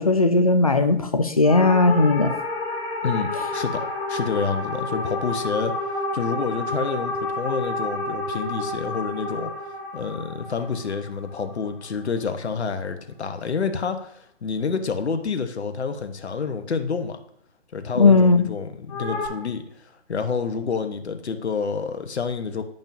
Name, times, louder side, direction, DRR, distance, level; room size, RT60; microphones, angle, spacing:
voice 1, 0.0-2.3 18.0-18.5, left 3 dB, 35° left, 7 dB, 0.4 m, -17 dB
sound 1, 1.4-11.9 18.9-19.3, left 2 dB, 15° left, 2.3 m, -30 dB
voice 2, 3.0-3.8 4.1-9.5 9.9-17.2 17.7-19.6 20.1-22.6, left 5 dB, 70° left, 7 dB, 1.0 m, -28 dB
10.5 x 5.3 x 2.7 m, 0.69 s
figure-of-eight pair, 150°, 35 cm